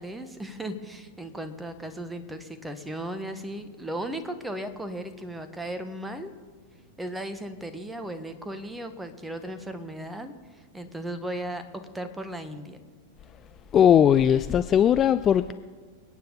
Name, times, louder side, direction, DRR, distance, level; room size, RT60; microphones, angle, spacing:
voice 1, 0.0-6.3 7.0-10.3 10.7-11.6 11.9-12.8, right 1 dB, 5° right, 10 dB, 1.3 m, -36 dB
voice 2, 13.7-15.5, left 9 dB, 25° left, 12 dB, 0.4 m, -19 dB
28.0 x 9.4 x 4.0 m, 1.5 s
figure-of-eight pair, 90°, 0 cm